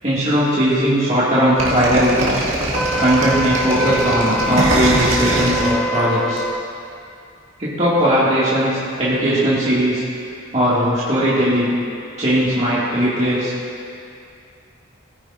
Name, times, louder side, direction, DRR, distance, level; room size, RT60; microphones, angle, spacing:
voice 1, 0.0-2.3 3.0-6.4 7.6-10.0 10.5-11.7 12.2-13.5, equal, 35° right, -10 dB, 2.1 m, -18 dB
sound 1, 1.6-6.4, right 1 dB, 85° right, 1.9 m, -22 dB
Wind instrument woodwind instrument, 2.7-6.6, equal, 5° left, 0.4 m, -24 dB
18.0 x 9.8 x 2.6 m, 2.4 s
head